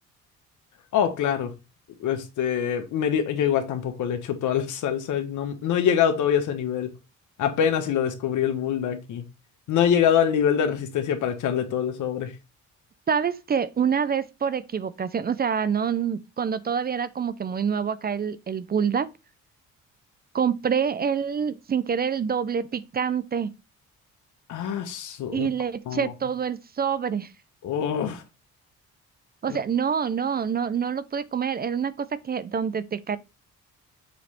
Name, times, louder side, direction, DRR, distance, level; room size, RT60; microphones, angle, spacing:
voice 1, 0.9-1.5 2.0-6.9 7.4-9.2 9.7-12.3 24.5-25.5 25.9-26.1 27.6-28.2 29.5-29.6, left 8 dB, 80° left, 1.3 m, -24 dB
voice 2, 13.1-19.1 20.3-23.5 25.3-27.3 29.4-33.2, right 7 dB, 30° right, 0.5 m, -26 dB
6.9 x 3.1 x 4.2 m
cardioid pair, 90°, 30 cm